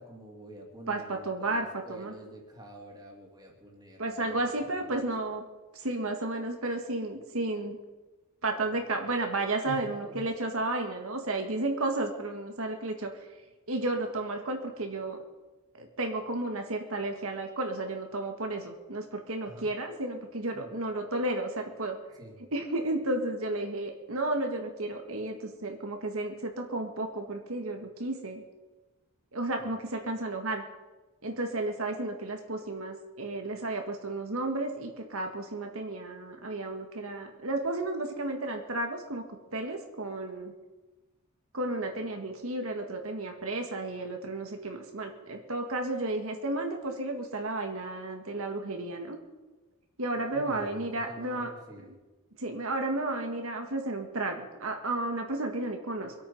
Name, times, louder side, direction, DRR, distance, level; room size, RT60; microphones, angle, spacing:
voice 1, 0.0-5.0 9.6-10.3 19.4-19.7 20.5-20.9 22.2-22.4 29.6-29.7 50.1-51.9, left 1 dB, 20° right, 0 dB, 2.7 m, -47 dB
voice 2, 0.9-2.1 4.0-5.4 5.7-7.8 8.4-13.1 13.7-15.2 15.8-22.0 22.5-28.4 29.3-30.6 31.2-39.2 39.5-40.5 41.5-49.2 50.0-51.5 52.4-56.1, right 2 dB, 70° right, 3 dB, 1.9 m, -33 dB
24.0 x 8.7 x 5.5 m, 1.2 s
head